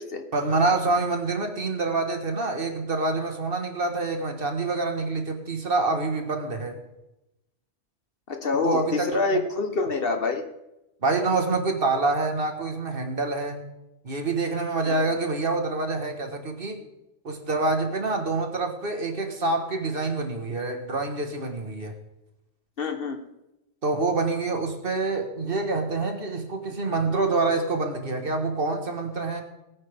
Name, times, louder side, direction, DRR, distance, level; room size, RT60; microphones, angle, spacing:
voice 1, 0.3-6.8 8.6-9.1 11.0-13.7 14.0-16.8 17.2-21.9 23.8-29.4, right 3 dB, 50° right, 5 dB, 1.7 m, -26 dB
voice 2, 8.3-10.4 14.9-15.0 22.8-23.2, left 3 dB, 50° left, 5 dB, 1.3 m, -26 dB
20.0 x 9.2 x 3.5 m, 0.92 s
omnidirectional pair, 1.2 m